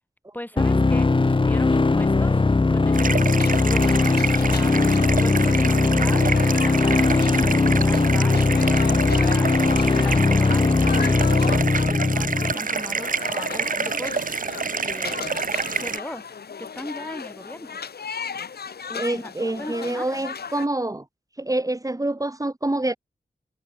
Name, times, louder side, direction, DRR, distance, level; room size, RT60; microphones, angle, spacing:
voice 1, 0.3-2.4 2.7-6.3 6.6-9.5 10.0-14.2 14.8-15.4 15.8-16.3 16.6-17.8 18.9-20.3, left 1 dB, 10° left, 4.4 m, -38 dB
sound 1, 0.6-12.5, left 3 dB, 30° left, 0.9 m, -19 dB
sound 2, 2.9-16.0, right 5 dB, 60° right, 1.3 m, -28 dB
sound 3, 3.3-20.7, left 6 dB, 90° left, 7.4 m, -36 dB
voice 2, 19.0-21.0 21.4-23.0, right 2 dB, 20° right, 2.6 m, -26 dB
cardioid pair, 55°, 16 cm